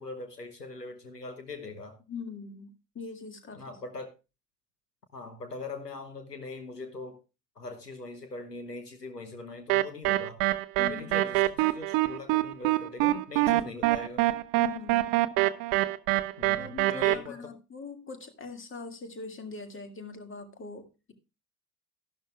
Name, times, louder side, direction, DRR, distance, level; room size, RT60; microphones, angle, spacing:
voice 1, 0.0-2.0 3.5-4.1 5.1-7.2 7.6-10.4 10.8-14.3 16.4-17.4, left 3 dB, 90° left, 8 dB, 1.0 m, -41 dB
voice 2, 2.1-3.8 10.8-11.2 14.6-15.2 16.6-21.1, left 4 dB, 25° left, 7 dB, 2.0 m, -42 dB
sound 1, 9.7-17.1, right 17 dB, 45° right, 0.7 m, -25 dB
13.0 x 11.5 x 2.2 m, 0.28 s
figure-of-eight pair, 60°, 47 cm